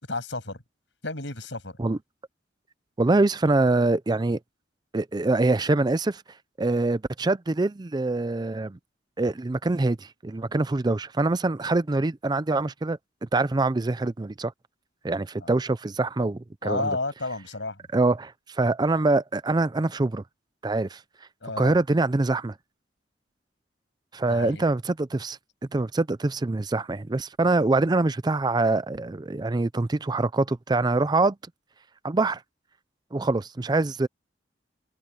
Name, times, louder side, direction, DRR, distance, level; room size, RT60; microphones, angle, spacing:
voice 1, 0.1-0.6 1.0-1.8 15.4-15.5 16.6-17.8 21.4-21.8 24.2-24.7, left 3 dB, 80° left, 7.1 m, -32 dB
voice 2, 3.0-4.4 4.9-6.2 6.6-8.8 9.2-13.0 13.3-14.5 15.0-16.9 17.9-20.2 20.6-21.0 21.6-22.5 24.1-25.4 25.7-31.4 32.0-32.4 33.1-34.1, right 2 dB, 25° right, 0.4 m, -24 dB
head